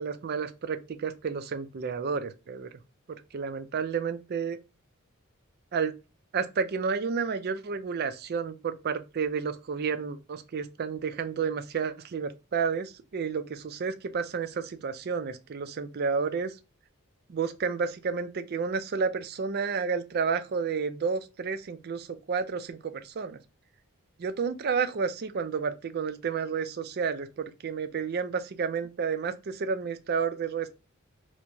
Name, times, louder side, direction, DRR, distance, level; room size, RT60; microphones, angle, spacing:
voice 1, 0.0-2.7 3.3-4.6 5.7-5.9 6.3-16.5 17.3-23.4 24.2-30.7, right 5 dB, 50° right, 0.4 m, -31 dB
4.5 x 2.1 x 2.6 m
head